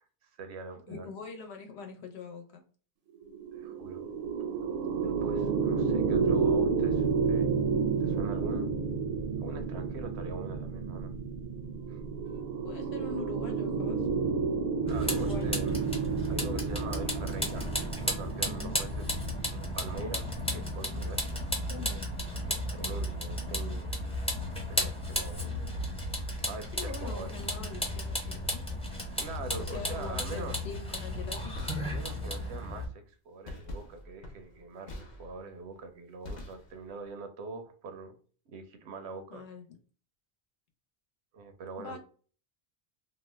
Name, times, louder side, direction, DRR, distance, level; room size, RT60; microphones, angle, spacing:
voice 1, 0.2-1.1 3.5-4.0 5.0-7.5 8.0-8.7 9.4-11.1 11.9-12.0 14.8-15.7 16.3-19.0 19.5-21.3 22.5-24.0 24.7-25.6 26.4-27.3 29.2-30.6 31.8-38.2 38.5-39.4 41.3-42.0, right 4 dB, 85° right, 7 dB, 0.9 m, -43 dB
voice 2, 0.9-2.6 12.2-14.1 15.1-15.7 18.4-18.7 20.4-20.6 21.7-22.1 26.7-28.6 29.6-31.6 39.3-39.8 41.8-42.0, left 5 dB, 80° left, 4 dB, 1.0 m, -43 dB
sound 1, 3.2-20.7, right 5 dB, 65° right, 0.7 m, -31 dB
Vehicle, 14.9-32.8, left 1 dB, 5° left, 0.6 m, -34 dB
sound 2, 29.7-30.2 31.5-32.3 33.4-35.6 36.2-37.0, left 2 dB, 50° left, 0.7 m, -45 dB
2.8 x 2.2 x 3.2 m, 0.41 s
omnidirectional pair, 1.1 m